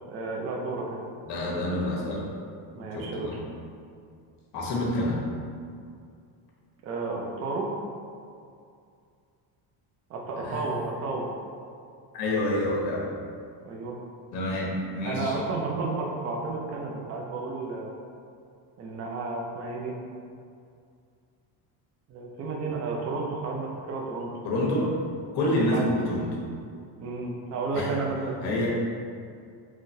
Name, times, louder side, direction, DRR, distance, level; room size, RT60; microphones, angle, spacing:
voice 1, 0.1-1.0 2.7-3.3 6.8-7.7 10.1-11.3 13.6-14.0 15.0-17.9 18.8-19.9 22.1-24.3 25.4-25.8 27.0-28.4, right 3 dB, 35° right, -1 dB, 0.5 m, -32 dB
voice 2, 1.2-2.2 2.9-3.4 4.5-5.2 10.4-10.6 12.1-13.1 14.3-15.4 24.4-24.9 25.3-26.3 27.7-27.9 28.4-28.7, left 1 dB, 60° left, -4 dB, 1.1 m, -27 dB
3.8 x 3.1 x 2.7 m, 2.3 s
cardioid pair, 150°, 43 cm